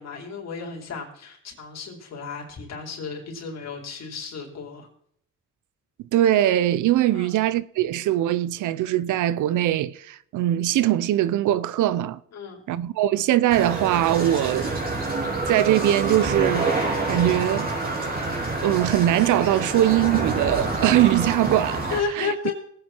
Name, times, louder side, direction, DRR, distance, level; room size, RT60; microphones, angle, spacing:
voice 1, 0.0-4.9 7.1-7.4 12.3-12.6 21.9-22.5, left 5 dB, 60° left, 4.3 m, -33 dB
voice 2, 6.0-12.2 12.7-14.9 15.5-16.8 17.1-17.7 18.0-18.3 18.6-22.5, right 13 dB, 80° right, 0.7 m, -22 dB
sound 1, 13.5-22.0, right 3 dB, 30° right, 4.5 m, -27 dB
19.5 x 8.9 x 4.5 m
cardioid pair, 90°, 30 cm